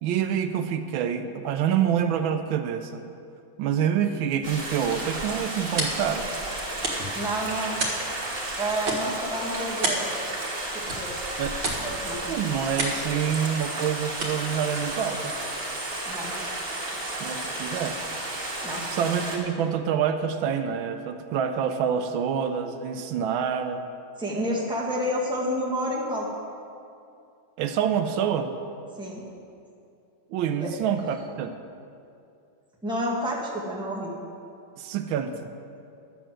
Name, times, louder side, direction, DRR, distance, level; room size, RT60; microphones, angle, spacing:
voice 1, 0.0-3.0 3.6-6.3 11.4-11.6 12.3-15.3 17.2-18.0 18.9-23.8 27.6-28.5 30.3-31.5 34.8-35.5, right 8 dB, 90° right, 8 dB, 1.4 m, -27 dB
Stream, 4.4-19.4, right 1 dB, 40° right, 2.3 m, -33 dB
sound 1, 4.7-15.9, right 2 dB, 65° right, 2.4 m, -35 dB
voice 2, 7.1-7.8 8.6-10.2 10.7-11.1 11.7-12.3 16.0-16.3 18.6-19.0 24.2-26.3 29.0-29.3 30.6-30.7 32.8-34.1, equal, ahead, -5 dB, 1.7 m, -29 dB
11.5 x 7.1 x 7.5 m, 2.5 s
omnidirectional pair, 2.2 m